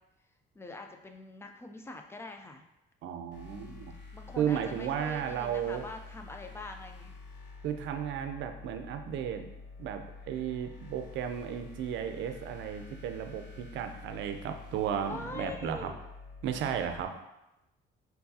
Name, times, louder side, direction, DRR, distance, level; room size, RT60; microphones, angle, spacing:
voice 1, 0.5-2.7 3.5-3.8 4.1-7.1 15.1-16.0, left 2 dB, 15° left, 4 dB, 0.4 m, -44 dB
voice 2, 3.0-3.9 4.4-5.8 7.6-15.9 16.4-17.1, right 8 dB, 70° right, 7 dB, 0.5 m, -34 dB
sound 1, 3.3-17.0, left 4 dB, 65° left, 0.7 m, -48 dB
4.5 x 4.0 x 2.7 m, 0.92 s
cardioid pair, 115°, 20 cm